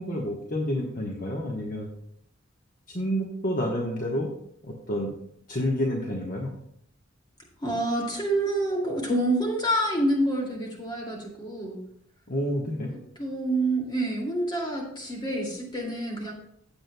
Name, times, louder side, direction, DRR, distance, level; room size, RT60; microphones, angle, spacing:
voice 1, 0.0-1.9 2.9-4.3 4.6-5.1 5.5-6.5 12.3-12.9, equal, 40° left, -1 dB, 1.2 m, -29 dB
voice 2, 7.6-11.8 13.2-16.3, right 1 dB, 20° left, -1 dB, 2.4 m, -27 dB
16.0 x 7.6 x 2.2 m, 0.71 s
head